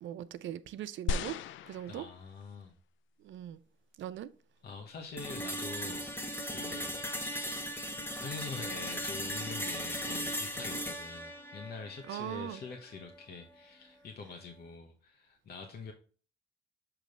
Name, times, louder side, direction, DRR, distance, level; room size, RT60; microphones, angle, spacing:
voice 1, 0.0-1.4 1.7-2.0 3.2-3.6 4.0-4.3 12.1-12.6, right 11 dB, 70° right, 0.5 m, -40 dB
sound 1, 1.1-2.6 3.3-3.4, left 5 dB, 75° left, 0.4 m, -36 dB
voice 2, 1.9-2.8 4.6-7.1 8.2-15.9, left 4 dB, 55° left, 1.0 m, -45 dB
sound 2, 5.2-13.2, equal, 10° left, 1.2 m, -38 dB
6.9 x 3.1 x 5.2 m
cardioid pair, 90°, 20 cm